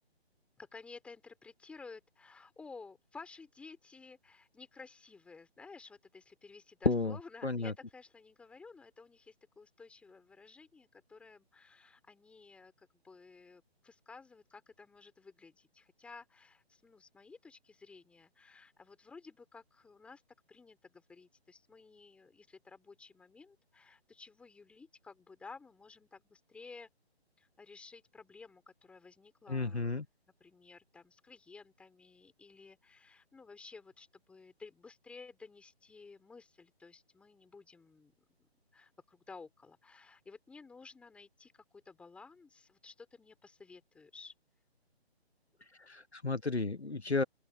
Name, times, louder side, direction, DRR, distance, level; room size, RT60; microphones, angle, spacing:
voice 1, 0.6-20.2 20.5-26.9 27.4-30.0 30.4-38.1 38.4-44.3, left 4 dB, 5° left, 4.6 m, -54 dB
voice 2, 7.4-7.7 29.5-30.0 45.9-47.2, left 3 dB, 80° left, 1.7 m, -32 dB
open air
figure-of-eight pair, 145°, 32 cm